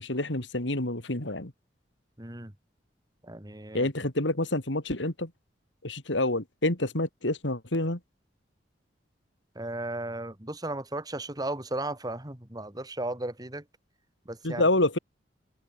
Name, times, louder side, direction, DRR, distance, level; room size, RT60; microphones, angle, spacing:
voice 1, 0.0-1.5 3.7-5.3 5.8-8.0 14.4-15.0, left 2 dB, 85° left, 3.7 m, -28 dB
voice 2, 2.2-2.5 3.2-3.9 9.5-13.6 14.3-14.6, right 2 dB, 20° right, 2.5 m, -35 dB
open air
head